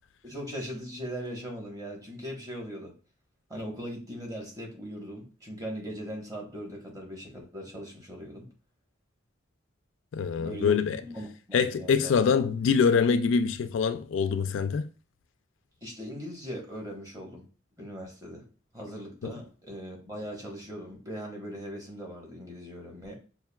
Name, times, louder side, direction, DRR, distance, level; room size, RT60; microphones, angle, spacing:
voice 1, 0.2-2.9 3.5-8.5 10.4-12.1 15.8-17.4 17.8-18.5 18.7-23.2, equal, 20° right, 1.2 m, -39 dB
voice 2, 10.1-11.0 11.5-14.9 19.2-19.3, left 6 dB, 80° left, 0.3 m, -24 dB
5.6 x 2.5 x 2.3 m
head